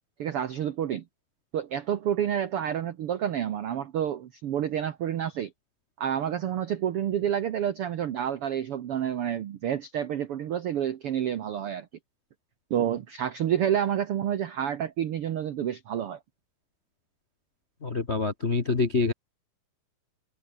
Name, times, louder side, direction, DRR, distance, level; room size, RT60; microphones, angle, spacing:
voice 1, 0.2-1.0 1.5-5.5 6.0-11.9 12.7-16.2, right 9 dB, 80° right, 1.3 m, -29 dB
voice 2, 17.8-19.1, left 4 dB, 70° left, 0.6 m, -26 dB
omnidirectional pair, 4.1 m